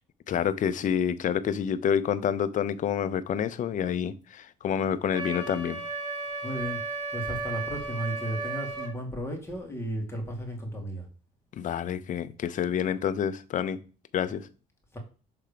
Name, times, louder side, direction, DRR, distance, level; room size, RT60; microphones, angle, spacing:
voice 1, 0.3-5.8 11.5-13.8 14.1-14.5, left 8 dB, 50° left, 0.7 m, -28 dB
Wind instrument woodwind instrument, 5.1-8.9, right 3 dB, 25° right, 2.2 m, -34 dB
voice 2, 6.4-6.8 7.1-11.1 14.9-15.0, right 1 dB, 15° left, 2.2 m, -34 dB
6.7 x 3.6 x 5.0 m
cardioid pair, 110°, 17 cm